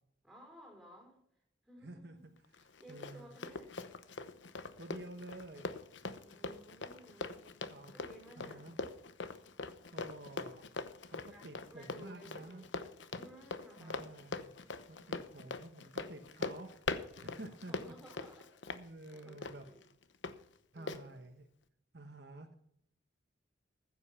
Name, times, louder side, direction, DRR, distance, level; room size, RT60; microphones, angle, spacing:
voice 1, 0.2-1.2 1.6-2.3 2.8-3.8 6.2-8.8 11.3-12.7 13.1-14.1 17.7-18.6 19.1-19.8 20.7-21.2, right 1 dB, ahead, 4.8 m, -57 dB
voice 2, 1.8-3.3 4.8-5.8 7.7-7.9 8.4-8.8 9.9-10.6 11.1-12.6 13.8-14.5 14.9-17.7 18.7-19.6 20.7-21.5 21.9-22.5, right 2 dB, 55° right, 1.2 m, -50 dB
Run, 2.5-20.3 20.9-21.0, left 3 dB, 75° left, 1.0 m, -43 dB
15.0 x 7.9 x 5.7 m
head